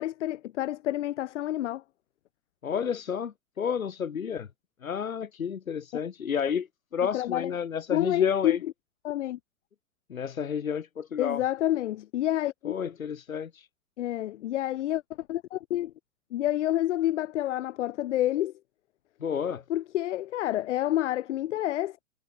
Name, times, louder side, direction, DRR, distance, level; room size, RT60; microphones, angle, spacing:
voice 1, 0.0-1.8 7.1-7.5 7.9-8.7 9.0-9.4 11.2-12.7 14.0-15.0 15.3-15.9 16.3-18.5 19.7-22.0, left 13 dB, 55° left, 3.2 m, -28 dB
voice 2, 2.6-4.5 4.8-6.7 6.9-8.6 10.1-11.4 12.6-13.6 19.2-19.6, left 7 dB, 75° left, 3.4 m, -30 dB
figure-of-eight pair, 105°, 41 cm